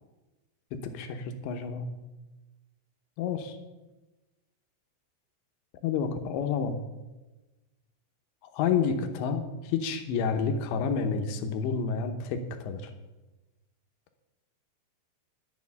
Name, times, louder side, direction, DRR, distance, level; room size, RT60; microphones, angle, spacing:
voice 1, 0.7-1.9 3.2-3.6 5.8-6.8 8.4-12.9, left 6 dB, 75° left, 6 dB, 2.8 m, -29 dB
11.0 x 7.1 x 9.5 m, 1.1 s
omnidirectional pair, 5.9 m